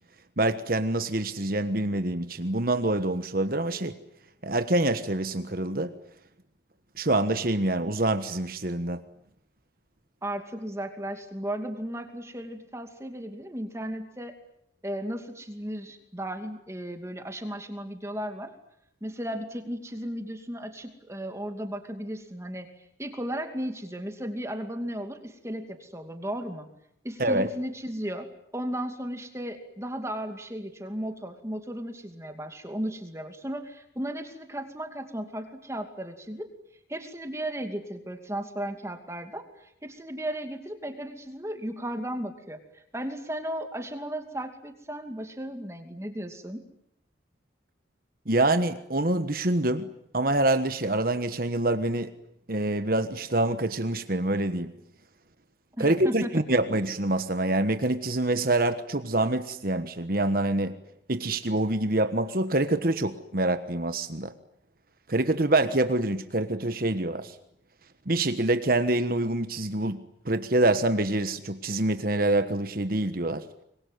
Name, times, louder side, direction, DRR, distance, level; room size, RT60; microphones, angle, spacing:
voice 1, 0.4-4.0 4.4-5.9 7.0-9.0 27.2-27.5 48.3-52.1 52.5-54.7 55.8-60.8 61.1-64.3 65.1-67.4 68.1-73.4, right 2 dB, 50° right, 1.4 m, -26 dB
voice 2, 10.2-14.4 14.8-18.5 19.0-26.7 27.0-36.5 36.9-46.6 55.8-56.3, right 1 dB, 15° right, 2.6 m, -35 dB
26.5 x 23.0 x 9.5 m
head